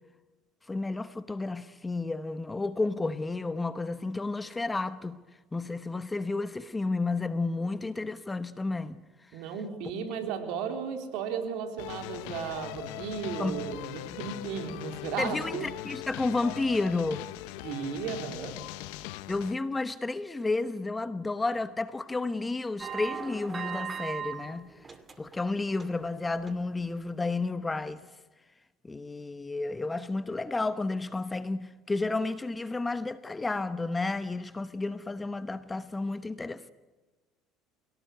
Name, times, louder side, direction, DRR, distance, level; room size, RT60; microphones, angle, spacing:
voice 1, 0.7-5.2 5.5-9.0 13.4-13.7 15.2-17.3 19.3-24.7 25.2-28.0 28.8-36.7, left 3 dB, 15° left, 1.0 m, -31 dB
voice 2, 9.3-15.7 17.6-18.5, right 7 dB, 75° right, 4.1 m, -35 dB
sound 1, 11.8-19.5, left 16 dB, 85° left, 1.0 m, -40 dB
sound 2, 22.8-24.4 24.7-25.4 25.7-26.0 26.5-26.6, right 7 dB, 25° right, 2.4 m, -37 dB
27.5 x 18.0 x 9.5 m
supercardioid pair, 100°, 0 cm